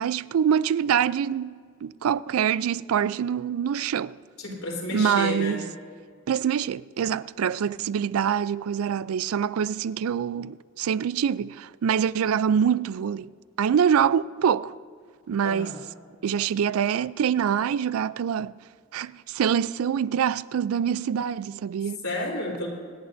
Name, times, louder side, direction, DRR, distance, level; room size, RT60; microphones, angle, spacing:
voice 1, 0.0-4.1 4.9-5.6 6.3-13.3 13.6-14.7 15.3-15.8 16.2-18.5 18.9-22.0, right 8 dB, 85° right, 0.3 m, -25 dB
voice 2, 4.4-5.6 15.4-15.8 22.0-22.7, left 1 dB, 90° left, 3.6 m, -31 dB
26.0 x 11.0 x 2.6 m
head